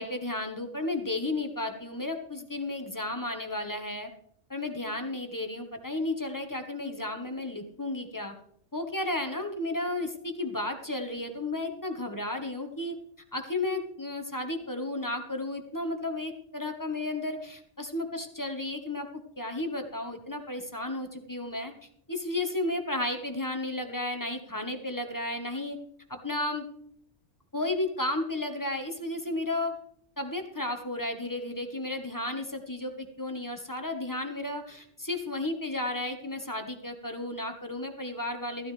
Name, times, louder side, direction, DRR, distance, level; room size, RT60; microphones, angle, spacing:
voice 1, 0.0-4.1 4.5-8.3 8.7-13.0 13.3-19.1 19.4-21.7 22.1-25.8 26.1-26.7 27.5-29.7 30.2-38.7, left 2 dB, 15° left, 5 dB, 1.2 m, -33 dB
14.5 x 13.5 x 3.4 m, 0.68 s
omnidirectional pair, 1.2 m